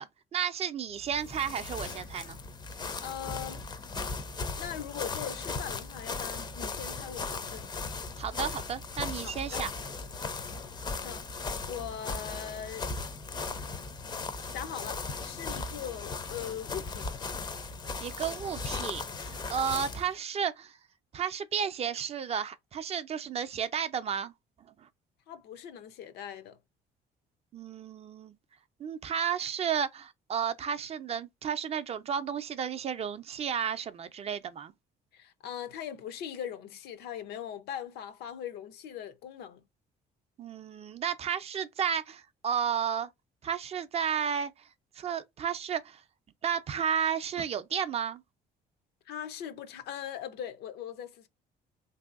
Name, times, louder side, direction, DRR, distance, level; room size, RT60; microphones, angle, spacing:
voice 1, 0.0-2.4 8.2-9.7 18.0-20.8 21.1-24.3 24.8-24.9 27.5-28.3 28.8-34.7 40.4-43.1 43.4-44.7 45.0-46.0 46.4-48.2, right 8 dB, 40° right, 0.4 m, -32 dB
sound 1, 1.0-20.1, left 4 dB, 25° left, 0.4 m, -37 dB
voice 2, 3.0-3.6 4.6-7.7 9.2-9.7 11.0-12.9 14.5-17.1 25.3-26.6 35.1-39.6 49.1-51.3, left 9 dB, 75° left, 0.6 m, -40 dB
3.1 x 2.7 x 2.3 m
cardioid pair, 110°, 17 cm